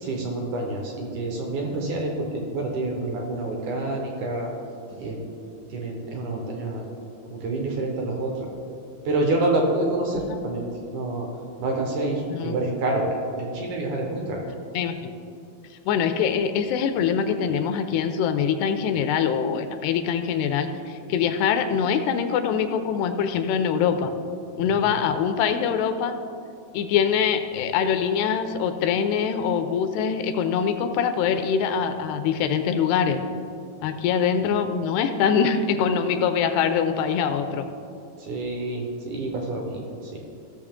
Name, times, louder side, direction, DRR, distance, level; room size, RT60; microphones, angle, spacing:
voice 1, 0.0-4.5 4.9-5.2 5.7-6.8 7.3-8.5 9.0-10.6 10.9-11.3 11.6-13.1 13.4-14.4 24.7-25.0 38.2-39.8 40.1-40.2, right 2 dB, 70° right, 1 dB, 1.9 m, -27 dB
voice 2, 15.9-24.1 24.6-26.2 26.7-33.2 33.8-37.7, left 7 dB, 85° left, 8 dB, 2.5 m, -23 dB
16.0 x 6.7 x 3.6 m, 2.6 s
omnidirectional pair, 4.8 m